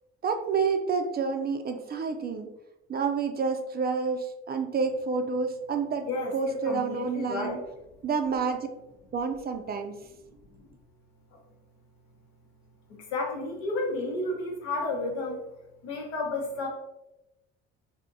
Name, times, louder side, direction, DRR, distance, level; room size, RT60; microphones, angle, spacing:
voice 1, 0.2-2.5 2.9-7.6 8.0-8.7 9.1-9.9, right 5 dB, 30° right, 6 dB, 0.4 m, -29 dB
voice 2, 6.0-7.6 10.6-10.7 11.3-11.4 12.9-15.4 15.8-16.7, left 2 dB, 80° left, 0 dB, 0.9 m, -32 dB
3.3 x 2.7 x 2.6 m, 0.93 s
hypercardioid pair, 65°, 30 cm